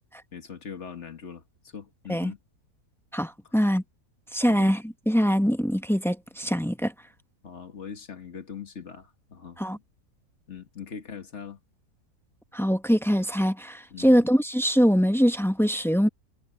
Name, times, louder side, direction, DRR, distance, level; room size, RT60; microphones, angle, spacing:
voice 1, 0.3-1.4 1.7-2.4 3.4-3.6 4.5-4.7 7.4-9.6 10.5-11.6 13.9-14.2, left 6 dB, 50° left, 1.9 m, -41 dB
voice 2, 3.1-3.8 4.3-6.9 9.6-9.8 12.5-16.1, equal, 5° left, 0.5 m, -23 dB
omnidirectional pair, 1.6 m